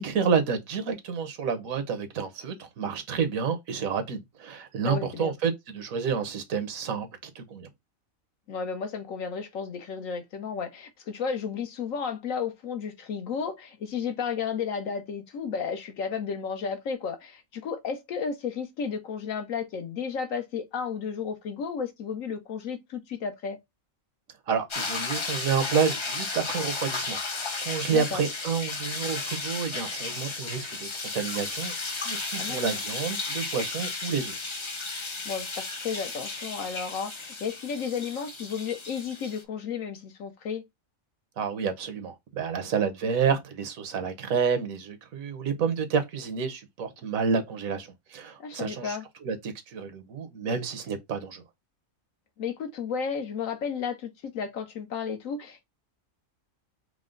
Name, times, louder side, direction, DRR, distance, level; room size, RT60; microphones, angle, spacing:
voice 1, 0.0-7.1 7.3-7.7 24.5-27.2 27.6-34.4 41.4-49.0 49.2-51.4, right 6 dB, 90° right, 1.3 m, -29 dB
voice 2, 4.9-5.3 8.5-23.6 27.9-28.2 32.3-32.8 35.2-40.6 48.4-49.1 52.4-55.6, left 6 dB, 80° left, 1.2 m, -33 dB
sound 1, 24.7-39.4, left 3 dB, 45° left, 0.4 m, -34 dB
4.7 x 2.1 x 3.7 m
omnidirectional pair, 1.4 m